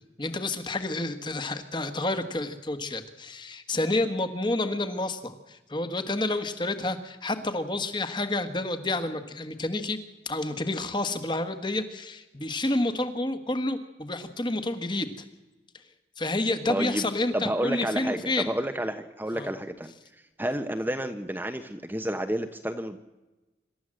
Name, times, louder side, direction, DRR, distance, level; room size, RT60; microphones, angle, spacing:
voice 1, 0.2-10.0 10.2-15.1 16.2-18.5 19.3-19.5, left 2 dB, 25° left, 9 dB, 1.5 m, -29 dB
voice 2, 16.7-17.1 17.3-19.9 20.4-23.0, right 1 dB, 10° right, 7 dB, 0.9 m, -30 dB
26.0 x 13.0 x 7.7 m, 1.1 s
head